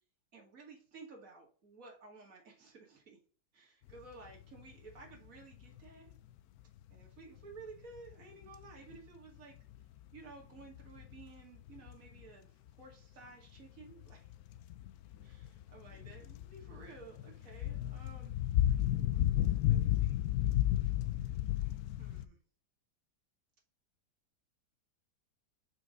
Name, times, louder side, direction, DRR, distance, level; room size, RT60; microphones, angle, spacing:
voice 1, 0.3-3.2 3.5-6.2 6.9-9.6 10.1-14.3 15.2-18.3 19.7-22.4, right 4 dB, 55° right, -1 dB, 2.7 m, -54 dB
sound 1, 3.9-4.0 4.3-4.6 4.9-5.1 5.5-6.1 6.8-6.9 7.6-7.7 8.0-9.0 9.7-10.0 10.3-10.4 10.6-11.4 11.7-12.2 13.6-22.3, left 13 dB, 70° left, 1.0 m, -33 dB
5.9 x 5.6 x 5.3 m, 0.39 s
omnidirectional pair, 1.8 m